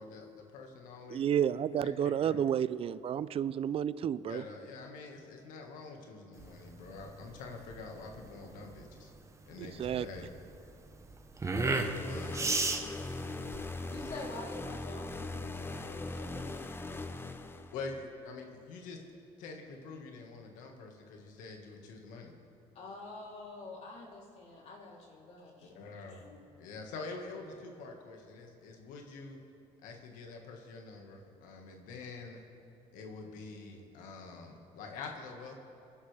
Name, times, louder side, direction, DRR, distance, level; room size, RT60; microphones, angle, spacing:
voice 1, 0.0-2.4 4.3-9.1 9.5-10.3 12.0-12.6 17.7-19.0 19.4-22.3 25.6-26.2 26.6-29.4 29.8-32.4 32.9-35.6, left 3 dB, 85° left, 2 dB, 1.7 m, -46 dB
voice 2, 1.1-4.4 9.6-10.1, right 9 dB, 45° right, 17 dB, 0.4 m, -31 dB
sound 1, 6.4-14.4, right 3 dB, 20° right, 1.0 m, -35 dB
sound 2, 11.6-18.0, left 2 dB, 15° left, 0.7 m, -40 dB
voice 3, 13.9-16.9 22.8-25.7 26.1-26.4, left 2 dB, 55° left, -3 dB, 3.3 m, -47 dB
25.5 x 11.0 x 3.4 m, 2.7 s
cardioid pair, 95°, 13 cm